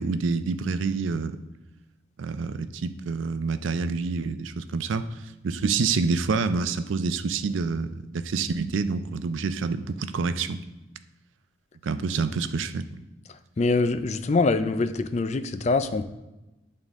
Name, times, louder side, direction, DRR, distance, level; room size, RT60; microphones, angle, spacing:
voice 1, 0.0-1.4 2.2-5.0 5.4-10.6 11.8-13.0, right 4 dB, 90° right, 11 dB, 0.4 m, -27 dB
voice 2, 13.6-16.0, left 3 dB, 35° left, 10 dB, 0.4 m, -24 dB
11.0 x 3.8 x 3.6 m, 1.0 s
head